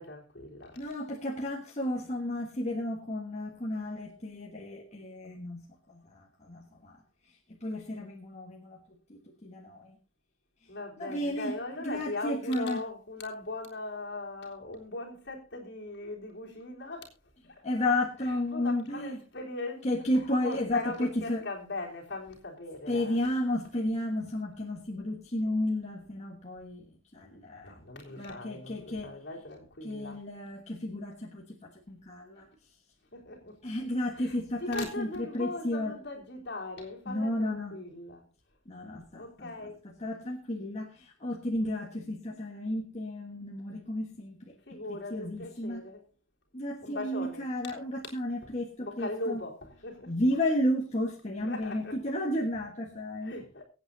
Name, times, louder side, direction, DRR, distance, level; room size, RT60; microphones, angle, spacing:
voice 1, 0.0-0.8 10.7-17.1 17.4-17.6 18.2-19.9 20.2-23.2 27.6-30.3 33.1-33.6 34.1-38.3 39.0-39.8 44.7-46.0 46.8-47.5 48.4-50.1 51.4-52.1 53.2-53.6, left 2 dB, 55° left, 3.5 m, -40 dB
voice 2, 0.8-5.6 5.9-7.0 7.5-8.8 9.1-10.0 11.0-11.5 11.8-12.8 17.6-19.2 19.8-21.4 22.9-26.8 27.1-27.7 28.2-29.1 29.8-32.5 33.6-35.1 35.3-35.9 37.1-37.7 38.7-39.5 40.0-44.6 44.9-45.8 46.5-49.4 50.1-53.3, left 1 dB, 35° left, 1.4 m, -32 dB
23.0 x 8.6 x 2.7 m
head